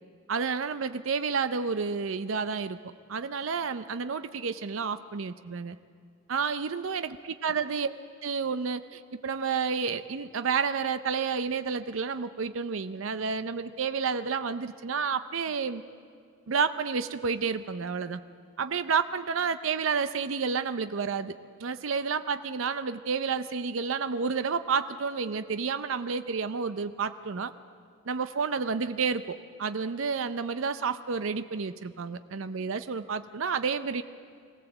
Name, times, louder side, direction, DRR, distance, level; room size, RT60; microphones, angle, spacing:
voice 1, 0.3-5.8 6.3-7.9 8.2-15.8 16.5-18.2 18.6-21.3 21.6-27.5 28.1-34.0, right 5 dB, 75° right, 11 dB, 0.6 m, -30 dB
22.5 x 17.0 x 7.9 m, 2.2 s
head